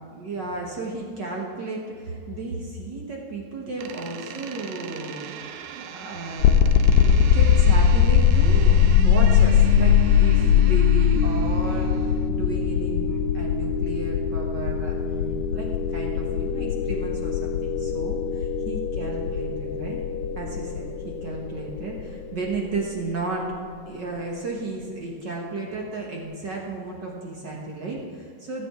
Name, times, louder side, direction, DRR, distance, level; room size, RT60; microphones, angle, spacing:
voice 1, 0.0-5.7 5.9-20.0 20.4-23.5 23.9-28.7, right 3 dB, 55° right, -1 dB, 1.3 m, -34 dB
Door, 3.8-12.3, right 8 dB, 80° right, 2.1 m, -40 dB
sound 1, 6.4-23.3, left 8 dB, 80° left, 2.0 m, -21 dB
15.5 x 8.7 x 3.6 m, 2.2 s
omnidirectional pair, 3.5 m